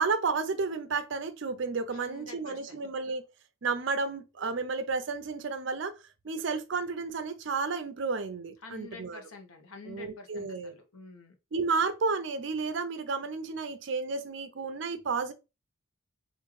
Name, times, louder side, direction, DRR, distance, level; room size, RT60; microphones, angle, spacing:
voice 1, 0.0-3.2 3.6-5.9 6.2-9.2 9.9-10.8 11.5-15.3, right 4 dB, 55° right, 0.5 m, -32 dB
voice 2, 1.9-2.8 8.6-11.4, left 3 dB, 85° left, 0.9 m, -48 dB
3.6 x 2.5 x 3.1 m
head